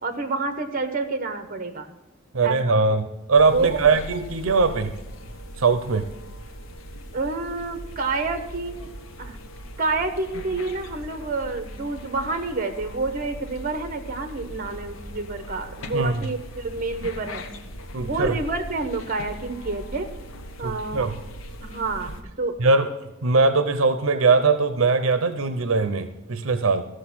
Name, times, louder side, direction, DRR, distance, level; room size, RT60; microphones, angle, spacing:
voice 1, 0.0-1.9 2.4-2.6 3.5-3.9 7.1-8.9 9.2-9.4 9.8-17.4 18.0-20.1 20.6-21.1 21.6-22.1 22.4-22.6, right 3 dB, 45° right, 8 dB, 1.2 m, -28 dB
voice 2, 2.3-4.9 5.6-6.0 15.9-16.2 17.9-18.4 20.6-21.2 22.6-22.9 23.2-26.8, right 4 dB, 85° right, 10 dB, 0.7 m, -21 dB
sound 1, 3.4-22.2, equal, 80° left, 1.0 m, -39 dB
14.5 x 6.4 x 6.1 m, 1.0 s
head